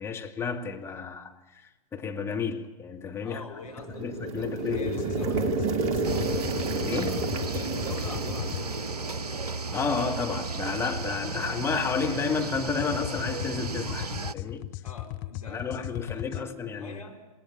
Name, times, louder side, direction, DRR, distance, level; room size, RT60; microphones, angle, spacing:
voice 1, 0.0-1.6 1.9-3.4 4.0-5.0 6.7-7.1 9.7-14.7 15.5-17.0, left 5 dB, 15° left, 2.2 m, -31 dB
voice 2, 3.2-5.6 6.9-7.3 7.5-9.1 14.8-17.3, left 3 dB, 70° left, 4.7 m, -43 dB
sound 1, 3.7-9.7, right 4 dB, 35° right, 2.6 m, -31 dB
sound 2, 4.7-8.6 12.5-16.4, left 17 dB, 35° left, 0.8 m, -38 dB
sound 3, 6.0-14.3, right 3 dB, 80° right, 0.8 m, -34 dB
27.5 x 19.0 x 8.5 m
figure-of-eight pair, 105°, 19 cm